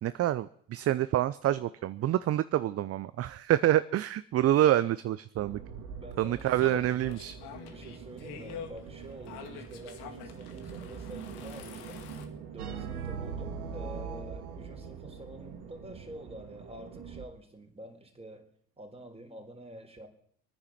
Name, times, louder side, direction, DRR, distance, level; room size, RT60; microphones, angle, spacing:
voice 1, 0.0-5.6 6.2-7.4, right 13 dB, 35° right, 15 dB, 0.6 m, -27 dB
sound 1, 5.4-17.3, right 6 dB, 55° right, 2.6 m, -45 dB
voice 2, 6.0-6.7 7.6-12.1 12.5-18.5 18.8-20.1, right 1 dB, 15° right, 3 dB, 4.0 m, -47 dB
sound 2, 6.3-12.3, left 9 dB, 60° left, 2.1 m, -46 dB
sound 3, 12.6-15.5, right 6 dB, 85° right, 1.3 m, -40 dB
24.5 x 9.8 x 5.9 m, 0.64 s
hypercardioid pair, 65°, 43 cm